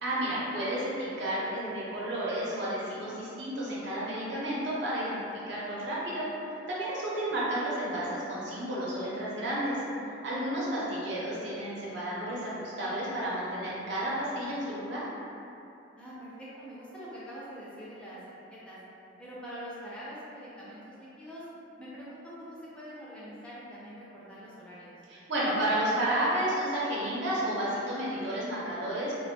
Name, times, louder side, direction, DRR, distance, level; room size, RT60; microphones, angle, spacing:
voice 1, 0.0-6.3 6.7-15.0 25.1-29.1, right 1 dB, 65° right, -7 dB, 0.6 m, -31 dB
voice 2, 16.0-18.2 18.5-18.8 19.2-21.4 21.8-24.9, equal, 5° left, -9 dB, 0.3 m, -44 dB
2.4 x 2.2 x 2.6 m, 2.8 s
head